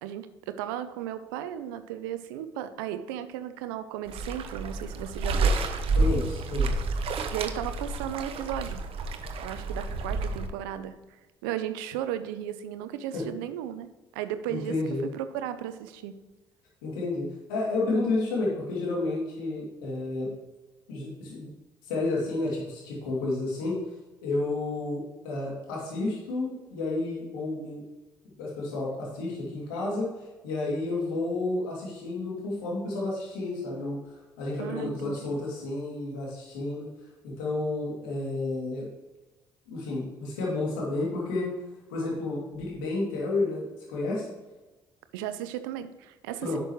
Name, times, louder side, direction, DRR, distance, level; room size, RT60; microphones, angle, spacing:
voice 1, 0.0-5.5 7.3-8.8 9.4-13.9 14.1-14.7 15.1-16.2 34.6-35.3 45.1-46.6, right 11 dB, 85° right, 11 dB, 0.6 m, -35 dB
sound 1, 4.1-10.5, right 3 dB, 60° right, 0.9 m, -29 dB
voice 2, 5.9-6.7 13.1-13.2 14.5-15.1 16.8-17.2 17.5-20.3 20.9-21.5 21.9-23.8 24.2-27.8 28.4-30.1 30.4-34.0 34.4-36.9 37.2-38.9 39.7-41.5 41.9-44.2 46.4-46.6, left 2 dB, 85° left, -4 dB, 2.7 m, -31 dB
11.0 x 6.7 x 3.2 m, 1.1 s
hypercardioid pair, 50°, 11 cm